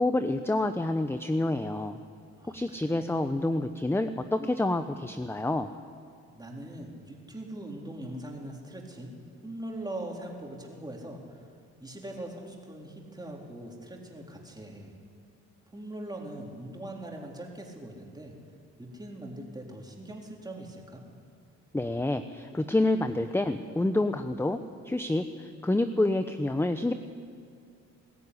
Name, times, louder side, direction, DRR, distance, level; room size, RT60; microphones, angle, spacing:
voice 1, 0.0-2.0 2.5-5.7 21.7-24.6 24.8-26.9, left 2 dB, 10° left, 9 dB, 0.9 m, -28 dB
voice 2, 2.4-3.0 6.3-9.1 9.4-11.4 11.8-14.9 15.7-18.3 18.8-21.0, right 1 dB, 15° right, 0 dB, 4.1 m, -41 dB
21.0 x 14.0 x 9.9 m, 2.2 s
cardioid pair, 90°, 30 cm